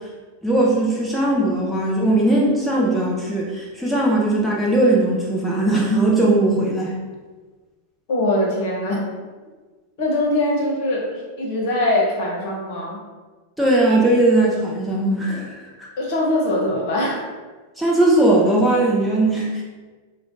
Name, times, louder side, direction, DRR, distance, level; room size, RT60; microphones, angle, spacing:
voice 1, 0.4-7.0 13.6-15.9 17.8-19.6, right 1 dB, ahead, -5 dB, 0.6 m, -19 dB
voice 2, 8.1-9.0 10.0-13.0 16.0-17.3, left 1 dB, 50° left, -3 dB, 1.1 m, -22 dB
4.8 x 2.4 x 2.6 m, 1.4 s
figure-of-eight pair, 90°, 0 cm